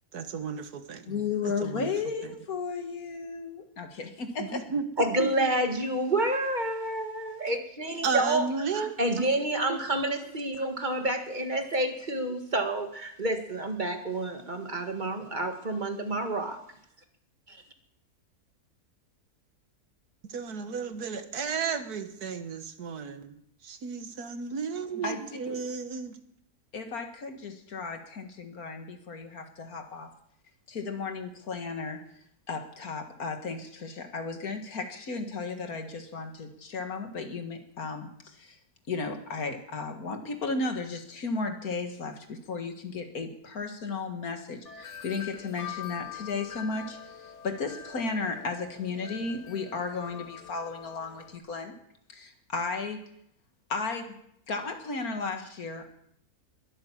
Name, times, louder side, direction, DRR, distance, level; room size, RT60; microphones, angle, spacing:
voice 1, 0.1-1.1 1.4-1.9 2.2-2.4 4.4-4.8 5.2-5.5 8.0-9.3 9.7-9.8 20.3-23.4 23.6-26.2, right 5 dB, 85° right, 9 dB, 1.8 m, -33 dB
voice 2, 1.1-4.6 25.0-25.6 26.7-30.1 30.7-32.0 32.5-38.6 38.9-51.8 52.1-53.1 53.7-54.1 54.5-55.9, left 4 dB, 70° left, 6 dB, 2.2 m, -34 dB
voice 3, 5.0-8.5 8.7-16.6, right 1 dB, 30° right, 5 dB, 1.9 m, -29 dB
Wind chime, 44.6-51.4, left 9 dB, 50° left, 1.7 m, -44 dB
21.5 x 8.9 x 7.4 m, 0.72 s
omnidirectional pair, 1.6 m